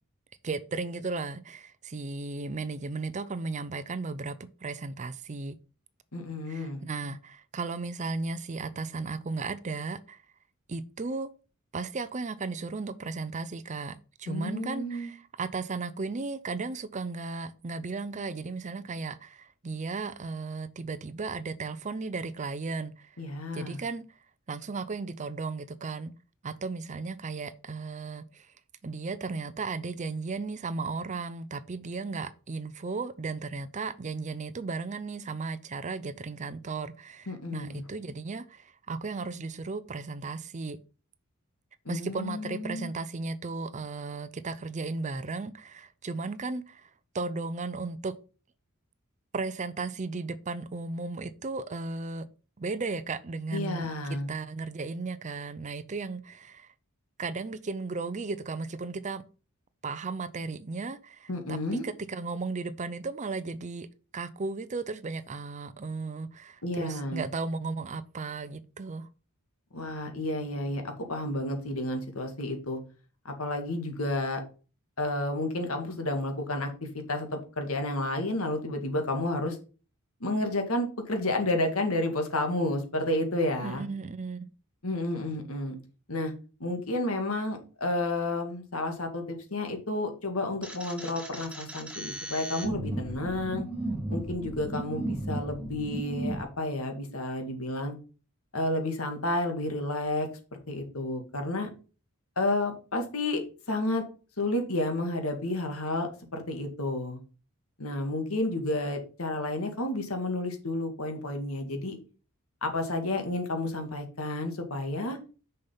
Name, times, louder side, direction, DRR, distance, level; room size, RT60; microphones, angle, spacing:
voice 1, 0.4-4.4 4.6-5.6 6.5-10.2 10.7-11.3 11.7-23.2 23.5-24.2 24.5-26.1 26.4-28.5 28.8-40.8 41.9-46.9 47.1-48.1 49.3-52.3 52.6-56.7 57.2-59.2 59.8-63.9 64.1-69.1 83.6-84.5, right 3 dB, 35° right, 0.5 m, -35 dB
voice 2, 6.1-6.8 14.3-15.1 23.2-23.8 37.3-37.8 41.9-42.9 53.5-54.3 61.3-61.8 66.6-67.3 69.7-72.8 73.3-74.4 75.0-79.6 80.2-83.9 84.8-85.8 86.1-86.3 86.6-93.7 94.1-98.0 98.5-100.3 100.7-101.7 102.4-103.4 103.7-104.0 104.4-107.2 107.8-112.0 112.6-115.2, left 1 dB, 75° left, 2.0 m, -31 dB
sound 1, 90.6-96.4, right 1 dB, 5° right, 1.6 m, -35 dB
6.6 x 5.7 x 5.5 m
head